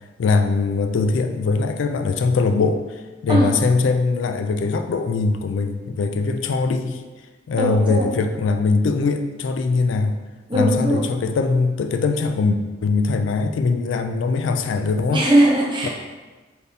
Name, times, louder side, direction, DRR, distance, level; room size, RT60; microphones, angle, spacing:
voice 1, 0.2-7.0 7.5-10.2 10.5-15.2 15.8-15.9, left 4 dB, 90° left, 7 dB, 0.3 m, -21 dB
voice 2, 7.5-8.1 10.5-11.0 15.1-15.9, right 1 dB, 25° right, -3 dB, 0.7 m, -19 dB
4.4 x 3.3 x 2.7 m, 1.3 s
head